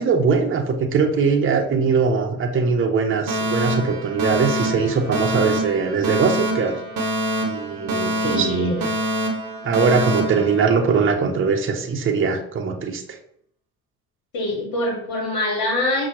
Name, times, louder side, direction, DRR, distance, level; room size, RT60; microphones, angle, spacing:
voice 1, 0.0-6.8 7.4-8.9 9.6-13.0, right 5 dB, 30° right, 4 dB, 0.7 m, -21 dB
Alarm, 3.3-11.3, right 1 dB, 85° right, 0.7 m, -26 dB
voice 2, 8.2-8.9 14.3-16.1, left 1 dB, 60° left, 1 dB, 1.1 m, -24 dB
5.6 x 2.2 x 3.0 m, 0.65 s
figure-of-eight pair, 40°, 42 cm